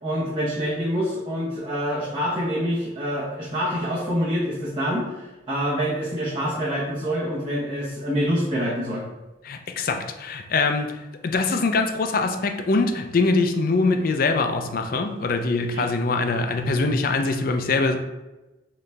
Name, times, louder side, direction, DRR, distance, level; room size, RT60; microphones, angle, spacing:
voice 1, 0.0-9.0 15.7-15.9, equal, 25° right, -8 dB, 0.8 m, -26 dB
voice 2, 9.4-18.0, left 3 dB, 50° left, 6 dB, 0.4 m, -23 dB
4.0 x 3.2 x 3.3 m, 1.0 s
head